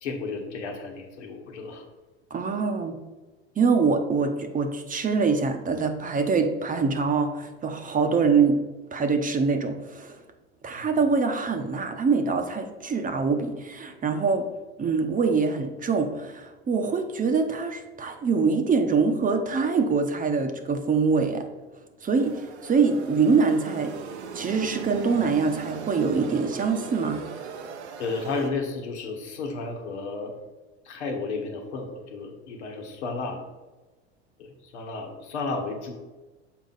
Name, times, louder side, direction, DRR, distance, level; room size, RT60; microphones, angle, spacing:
voice 1, 0.0-1.8 10.7-10.9 28.0-30.3 30.8-33.4 34.4-35.9, left 3 dB, 85° left, 2 dB, 1.3 m, -33 dB
voice 2, 2.3-2.9 3.6-8.6 8.9-10.2 10.6-14.5 14.8-21.5 22.0-23.9 24.3-27.2, right 5 dB, 25° right, 6 dB, 0.8 m, -24 dB
sound 1, 22.1-28.5, right 6 dB, 85° right, 0.8 m, -38 dB
6.6 x 4.5 x 3.9 m, 1.2 s
hypercardioid pair, 95°, 33 cm